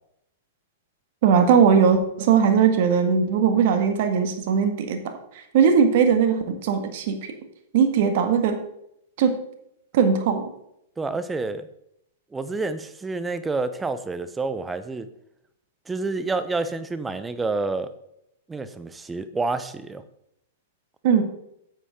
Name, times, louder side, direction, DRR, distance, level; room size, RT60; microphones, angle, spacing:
voice 1, 1.2-7.2 7.7-8.6 9.2-9.4 9.9-10.5 21.0-21.2, right 6 dB, 60° right, 7 dB, 1.8 m, -19 dB
voice 2, 11.0-11.7 12.3-15.1 15.9-17.9 18.5-20.0, right 3 dB, 10° right, 12 dB, 0.8 m, -28 dB
9.9 x 8.3 x 3.8 m, 0.76 s
hypercardioid pair, 120°, 0 cm